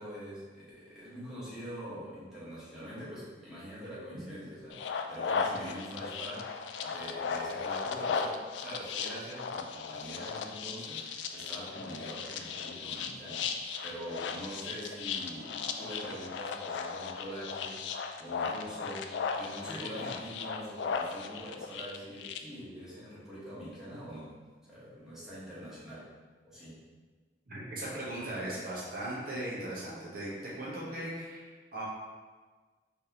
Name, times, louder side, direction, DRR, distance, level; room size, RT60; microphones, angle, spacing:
voice 1, 0.0-17.8 18.2-24.3 24.6-26.1 26.4-26.8, equal, 5° right, -10 dB, 1.4 m, -44 dB
sound 1, 4.7-22.4, left 5 dB, 90° left, 0.3 m, -36 dB
voice 2, 27.5-31.8, right 1 dB, 55° right, -6 dB, 1.1 m, -38 dB
4.6 x 3.4 x 2.9 m, 1.4 s
head